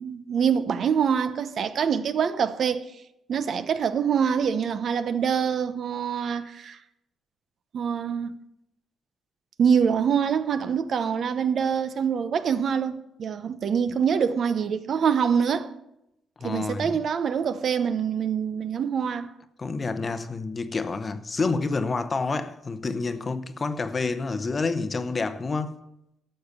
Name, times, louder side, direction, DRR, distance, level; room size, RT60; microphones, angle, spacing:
voice 1, 0.0-2.9 3.3-6.8 7.7-8.4 9.6-15.7 16.4-19.3, right 7 dB, 60° right, 0.8 m, -25 dB
voice 2, 16.4-16.9 19.6-25.8, left 3 dB, 35° left, 0.8 m, -28 dB
12.0 x 6.8 x 6.6 m
cardioid pair, 90°, 0 cm